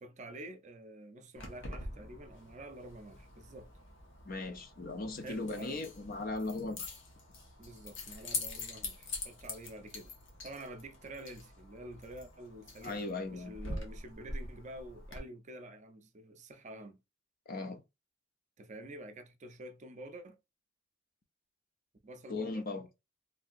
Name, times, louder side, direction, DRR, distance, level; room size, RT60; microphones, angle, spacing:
voice 1, 0.0-3.7 5.2-5.8 7.6-10.2 10.4-13.0 13.3-17.0 18.6-20.4 22.0-22.7, right 1 dB, 40° right, 0.5 m, -48 dB
Keys jangling, 1.4-15.2, left 3 dB, 70° left, 1.0 m, -45 dB
voice 2, 4.2-6.9 12.8-13.6 17.5-17.8 22.3-22.9, left 3 dB, 50° left, 0.6 m, -38 dB
3.2 x 2.8 x 2.5 m
head